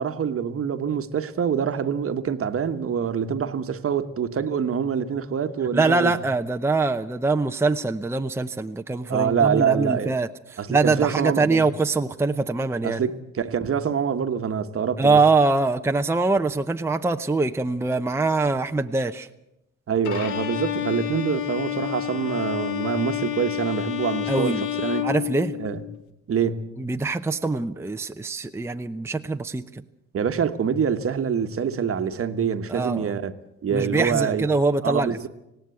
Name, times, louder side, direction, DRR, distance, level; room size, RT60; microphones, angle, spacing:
voice 1, 0.0-6.2 9.1-10.1 10.6-11.7 12.8-15.2 19.9-25.1 25.6-25.8 26.3-26.7 30.1-33.3 33.6-34.5 34.8-35.3, right 7 dB, 45° right, 1.3 m, -25 dB
voice 2, 5.7-13.0 15.0-19.3 24.3-24.6 25.0-25.5 26.8-29.8 32.7-33.1 33.7-35.3, right 3 dB, 10° right, 0.7 m, -23 dB
Bowed string instrument, 20.0-26.0, left 12 dB, 85° left, 1.4 m, -29 dB
18.0 x 17.5 x 8.3 m
cardioid pair, 90°, 30 cm